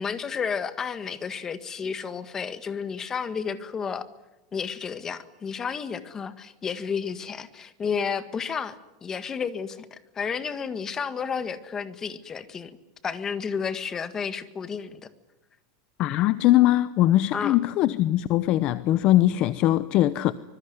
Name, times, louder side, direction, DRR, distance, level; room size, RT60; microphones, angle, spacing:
voice 1, 0.0-4.1 4.5-12.7 13.0-15.1 17.3-17.6, left 6 dB, 20° left, 1.7 m, -31 dB
voice 2, 16.0-20.3, left 14 dB, 40° left, 0.8 m, -21 dB
25.0 x 22.0 x 9.5 m
supercardioid pair, 160°, 3 cm